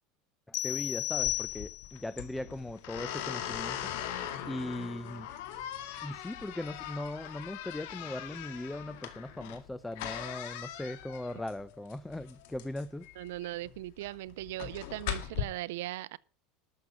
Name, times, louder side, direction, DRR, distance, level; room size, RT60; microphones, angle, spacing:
sound 1, 0.5-2.1, left 14 dB, 50° left, 0.5 m, -33 dB
voice 1, 0.5-4.1 4.5-5.3 6.0-13.1, left 1 dB, 10° left, 0.6 m, -39 dB
sound 2, 1.2-15.4, left 11 dB, 75° left, 1.9 m, -40 dB
voice 2, 13.2-16.2, right 16 dB, 80° right, 0.6 m, -39 dB
13.0 x 6.5 x 7.1 m
supercardioid pair, 120°, 0 cm